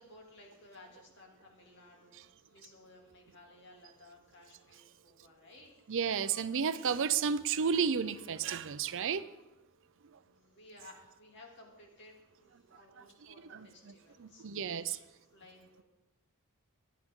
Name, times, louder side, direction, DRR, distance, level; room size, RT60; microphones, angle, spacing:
voice 1, 0.0-5.7 10.1-14.6 15.1-15.8, left 2 dB, 55° left, 0 dB, 2.7 m, -57 dB
voice 2, 5.9-9.3 13.0-13.1 13.5-13.9 14.2-15.0, right 6 dB, 60° right, 14 dB, 0.5 m, -32 dB
17.0 x 10.5 x 3.7 m, 0.99 s
head